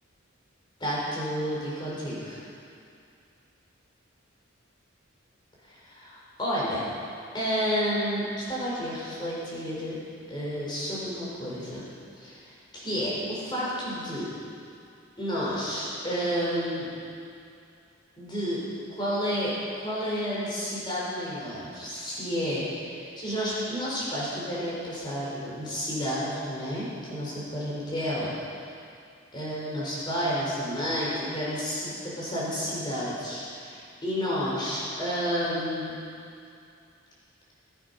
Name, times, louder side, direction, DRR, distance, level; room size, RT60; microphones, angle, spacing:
voice 1, 0.8-2.4 5.7-6.8 7.3-10.0 10.3-11.8 12.2-12.4 12.7-14.3 15.2-16.9 18.2-18.6 19.0-28.3 29.3-36.0, equal, 20° left, -7 dB, 4.7 m, -30 dB
20.5 x 9.7 x 5.5 m, 2.5 s
head